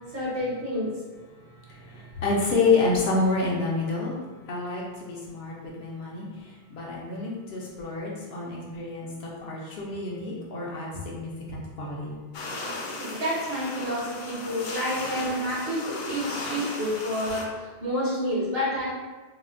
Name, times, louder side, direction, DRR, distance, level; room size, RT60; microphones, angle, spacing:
voice 1, 0.1-0.9 11.5-11.6 13.0-18.9, equal, 70° right, -7 dB, 1.4 m, -29 dB
voice 2, 1.3-12.2, left 3 dB, 75° left, -4 dB, 0.9 m, -29 dB
sound 1, 12.3-17.4, left 2 dB, 60° left, 0.6 m, -36 dB
3.9 x 2.1 x 2.5 m, 1.3 s
omnidirectional pair, 1.1 m